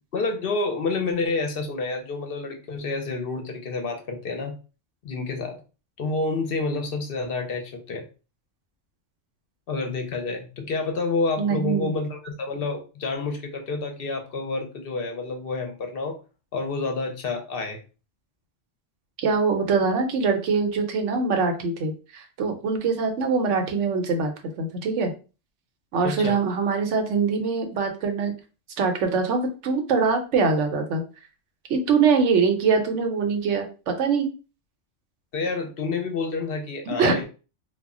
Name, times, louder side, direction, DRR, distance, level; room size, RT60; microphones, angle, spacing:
voice 1, 0.1-4.6 5.0-5.6 6.0-8.1 9.7-16.2 16.5-17.8 26.0-26.3 35.3-37.3, left 3 dB, 60° left, 4 dB, 0.7 m, -29 dB
voice 2, 11.4-11.9 19.2-24.3 24.6-25.1 25.9-28.3 28.8-31.0 31.7-34.3 36.9-37.3, right 5 dB, 85° right, 4 dB, 1.0 m, -23 dB
2.3 x 2.1 x 3.6 m, 0.33 s
omnidirectional pair, 1.2 m